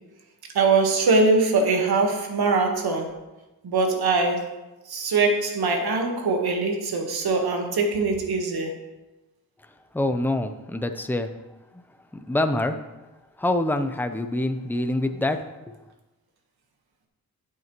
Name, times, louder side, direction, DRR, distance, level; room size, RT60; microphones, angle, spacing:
voice 1, 0.5-3.1 3.6-4.4 4.9-8.7, right 3 dB, 90° right, 3 dB, 1.5 m, -22 dB
voice 2, 9.9-11.3 12.3-12.8 13.4-15.4 15.7-15.8, left 1 dB, 5° left, 8 dB, 0.6 m, -25 dB
10.5 x 8.3 x 3.1 m, 1.1 s
cardioid pair, 80°, 37 cm